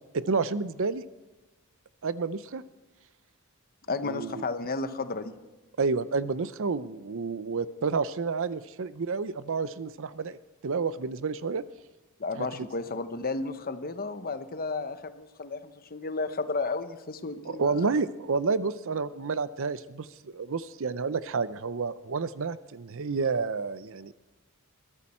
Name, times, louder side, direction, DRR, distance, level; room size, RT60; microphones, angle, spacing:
voice 1, 0.1-1.0 2.0-2.6 4.0-4.4 5.8-10.4 10.6-11.6 12.4-12.7 17.5-24.1, right 4 dB, 65° right, 15 dB, 0.6 m, -30 dB
voice 2, 3.9-5.3 12.2-17.9, left 3 dB, 45° left, 10 dB, 0.9 m, -33 dB
22.0 x 14.5 x 4.4 m, 1.1 s
head